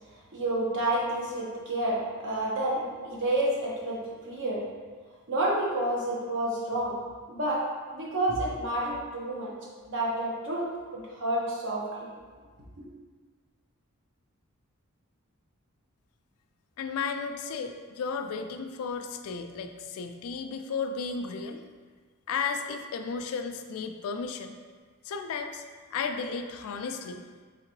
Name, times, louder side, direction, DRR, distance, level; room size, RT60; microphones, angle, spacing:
voice 1, 0.3-4.6 5.3-7.0 7.3-7.6 7.9-9.5 9.9-10.7 10.9-12.1 12.8-12.9, right 1 dB, 60° right, -4 dB, 1.0 m, -29 dB
voice 2, 16.8-21.6 22.3-24.6 25.0-25.6 25.9-27.3, left 5 dB, 65° left, 6 dB, 0.3 m, -34 dB
3.7 x 3.5 x 3.0 m, 1.5 s
head